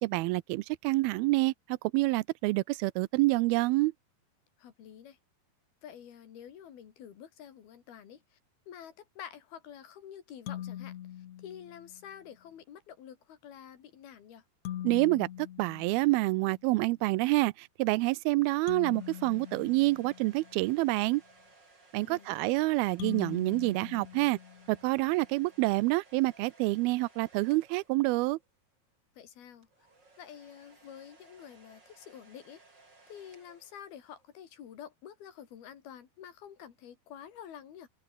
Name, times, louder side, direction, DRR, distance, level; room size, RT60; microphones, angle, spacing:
voice 1, 0.0-1.5 1.9-3.9 14.8-21.2 21.9-24.4 24.7-28.4, right 21 dB, 85° right, 2.5 m, -27 dB
voice 2, 4.6-5.2 5.8-8.4 8.7-14.4 22.0-22.5 29.2-29.7 30.2-32.6 33.1-37.9, left 9 dB, 85° left, 4.5 m, -49 dB
sound 1, 10.5-12.1 14.6-16.7 18.7-20.8 23.0-25.0, left 12 dB, 60° left, 2.1 m, -43 dB
sound 2, 18.4-28.6 29.6-34.4, right 3 dB, 30° right, 5.4 m, -61 dB
omnidirectional pair, 4.3 m